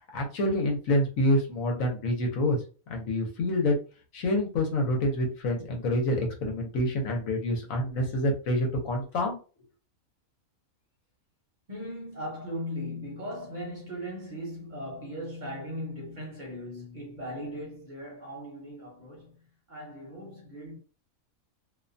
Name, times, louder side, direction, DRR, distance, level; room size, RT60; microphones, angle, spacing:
voice 1, 0.0-2.6 2.9-3.7 4.1-9.4, left 1 dB, 70° left, 1.1 m, -27 dB
voice 2, 11.7-19.4 19.7-20.8, equal, 40° right, 0.8 m, -38 dB
2.6 x 2.2 x 2.5 m
omnidirectional pair, 1.5 m